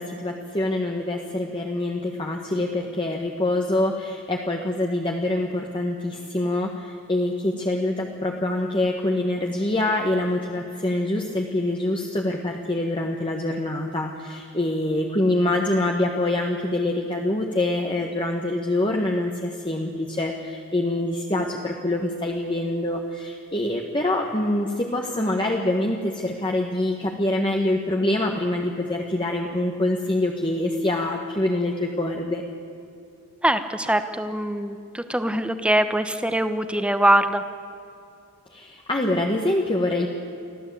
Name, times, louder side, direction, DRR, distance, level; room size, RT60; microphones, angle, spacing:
voice 1, 0.0-32.4 38.5-40.1, left 1 dB, 20° left, 1 dB, 1.4 m, -25 dB
voice 2, 33.4-37.4, right 1 dB, 5° right, 9 dB, 1.0 m, -22 dB
25.0 x 15.5 x 8.5 m, 2.7 s
head